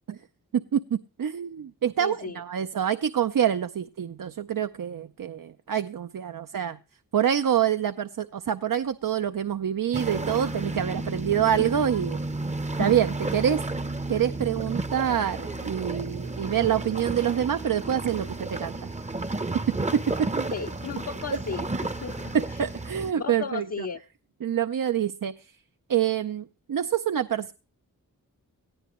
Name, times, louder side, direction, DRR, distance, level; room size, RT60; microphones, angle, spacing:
voice 1, 0.5-6.8 7.1-12.2 12.8-13.6 14.1-18.9 19.9-20.5 21.3-21.4 22.3-23.9 24.4-25.3 25.9-27.5, right 9 dB, 65° right, 0.6 m, -26 dB
voice 2, 2.0-2.4 20.5-22.6 23.2-24.0, left 6 dB, 45° left, 0.6 m, -35 dB
sound 1, 9.9-23.1, right 2 dB, 20° right, 0.7 m, -32 dB
19.0 x 13.5 x 3.0 m
wide cardioid pair, 75°, 35 cm